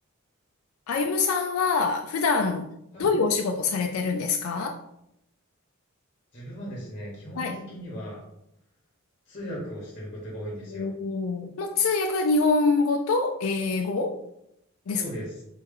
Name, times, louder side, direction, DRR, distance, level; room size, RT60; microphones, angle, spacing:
voice 1, 0.9-2.7 3.0-4.8 7.4-7.6 10.7-14.2 14.9-15.0, left 4 dB, 80° left, 4 dB, 0.4 m, -25 dB
voice 2, 6.3-8.2 9.3-10.9 14.9-15.4, equal, 30° left, -4 dB, 1.3 m, -37 dB
4.3 x 3.1 x 3.6 m, 0.79 s
head